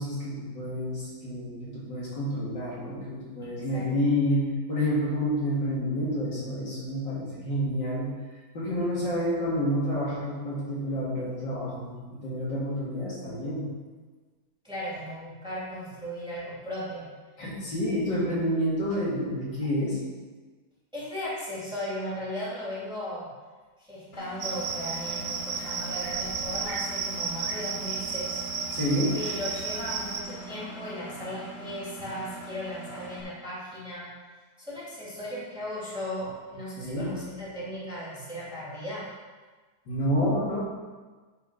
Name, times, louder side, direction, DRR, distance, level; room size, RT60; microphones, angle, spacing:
voice 1, 0.0-8.1 8.5-13.6 17.4-20.0 28.7-29.3 36.8-37.1 39.9-40.6, equal, 70° left, -6 dB, 2.8 m, -29 dB
voice 2, 14.6-17.1 20.9-23.3 23.8-28.4 29.1-34.1 34.6-39.1, equal, ahead, -8 dB, 2.5 m, -36 dB
Engine, 24.1-33.2, right 1 dB, 40° left, 1.3 m, -42 dB
Cricket, 24.4-30.2, right 5 dB, 75° right, 1.5 m, -33 dB
8.3 x 4.7 x 5.5 m, 1.4 s
omnidirectional pair, 2.0 m